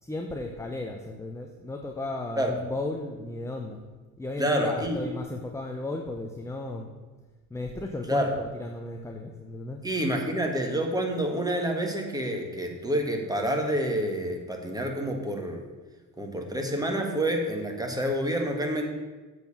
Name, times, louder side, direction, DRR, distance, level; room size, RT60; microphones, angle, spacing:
voice 1, 0.0-3.8 4.2-6.9 7.5-9.8, left 2 dB, 5° left, 3 dB, 0.7 m, -34 dB
voice 2, 4.4-5.0 8.1-8.3 9.8-15.6 16.2-18.9, right 1 dB, 10° right, 2 dB, 1.6 m, -28 dB
7.8 x 4.7 x 7.1 m, 1.3 s
supercardioid pair, 95°, 42 cm